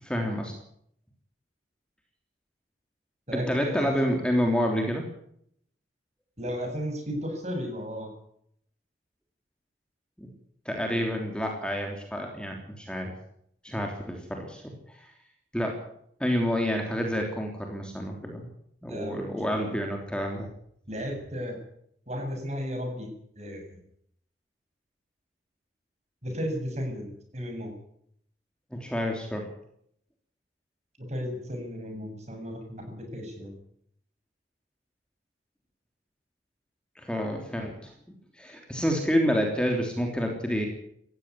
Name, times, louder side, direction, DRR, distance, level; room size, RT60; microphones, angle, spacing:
voice 1, 0.0-0.5 3.3-5.1 10.2-10.3 10.6-13.1 13.6-15.1 15.5-15.8 16.2-18.5 18.8-20.5 28.7-29.5 36.9-37.9 38.4-40.7, equal, 5° left, 2 dB, 3.2 m, -28 dB
voice 2, 3.3-4.2 6.4-8.1 18.9-19.6 20.9-21.5 22.1-23.1 23.4-23.6 26.2-27.7 31.0-33.5, equal, 40° right, 3 dB, 7.5 m, -34 dB
18.0 x 15.0 x 9.8 m, 0.70 s
head